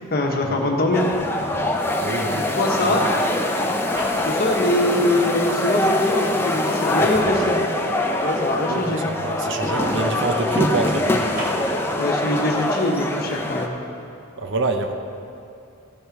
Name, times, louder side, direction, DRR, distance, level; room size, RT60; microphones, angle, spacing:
voice 1, 0.1-1.1 2.6-3.0 4.2-7.6 8.2-9.0 12.0-13.7, left 1 dB, 45° left, 0 dB, 1.3 m, -23 dB
sound 1, 0.9-13.7, left 1 dB, 10° left, 0.6 m, -23 dB
voice 2, 2.0-2.5 2.8-3.0 8.7-11.3 14.4-14.9, right 3 dB, 55° right, 6 dB, 0.7 m, -26 dB
sound 2, 3.9-5.6 6.2-10.0 10.2-12.2, equal, 40° right, 1.6 m, -39 dB
15.5 x 6.6 x 4.6 m, 2.5 s
head